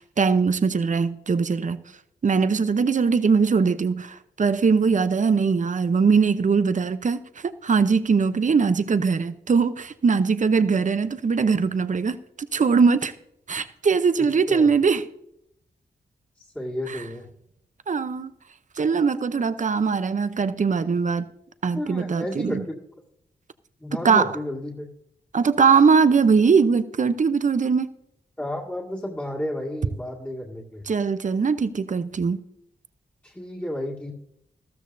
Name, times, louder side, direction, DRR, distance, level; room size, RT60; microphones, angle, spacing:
voice 1, 0.0-1.8 2.2-12.2 12.5-13.1 13.5-15.1 16.9-17.0 17.9-18.3 18.8-21.3 21.6-22.6 24.0-24.3 25.3-27.9 30.9-32.4, right 5 dB, 45° right, 0.7 m, -21 dB
voice 2, 14.2-14.7 16.4-17.3 21.7-22.8 23.8-24.9 28.4-30.9 33.2-34.1, left 1 dB, 10° left, 2.0 m, -32 dB
13.5 x 13.0 x 2.7 m
cardioid pair, 50°, 18 cm